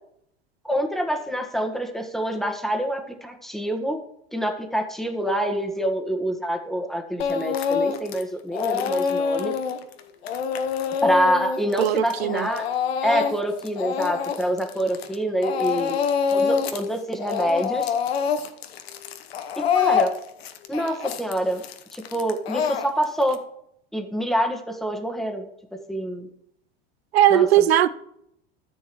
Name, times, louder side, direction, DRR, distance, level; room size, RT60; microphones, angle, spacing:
voice 1, 0.6-4.0 4.3-9.5 11.0-12.7 13.0-16.0 16.3-17.9 19.6-20.1 20.7-21.6 21.9-23.4 23.9-25.4 25.9-26.3 27.3-27.5, equal, ahead, 1.5 m, -26 dB
Speech / Crying sobbing, 7.2-8.2 8.5-15.2 15.4-16.8 17.1-23.3, left 6 dB, 85° left, 1.1 m, -25 dB
voice 2, 11.8-12.5 27.1-27.9, right 11 dB, 85° right, 0.6 m, -18 dB
14.0 x 7.4 x 3.1 m
hypercardioid pair, 90°, 30 cm